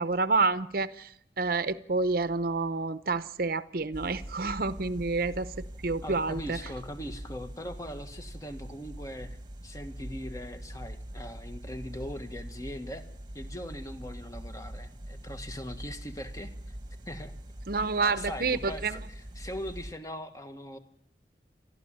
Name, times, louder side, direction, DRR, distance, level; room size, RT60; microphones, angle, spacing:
voice 1, 0.0-6.6 17.7-19.0, right 3 dB, 55° right, 13 dB, 0.8 m, -29 dB
sound 1, 3.9-19.9, right 1 dB, 25° right, 1.3 m, -43 dB
voice 2, 6.0-13.0 13.3-16.7 17.1-17.4 18.0-20.8, equal, 20° left, 8 dB, 1.5 m, -40 dB
29.5 x 12.5 x 8.9 m, 0.70 s
head